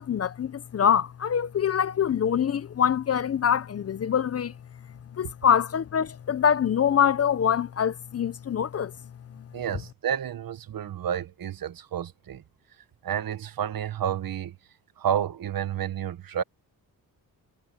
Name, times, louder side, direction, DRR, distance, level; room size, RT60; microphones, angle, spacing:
voice 1, 0.0-4.5 5.2-8.9, left 8 dB, 40° left, 0.6 m, -24 dB
voice 2, 9.5-12.4 13.0-14.6 15.0-16.4, right 9 dB, 70° right, 1.4 m, -30 dB
wide cardioid pair, 125°, 36 cm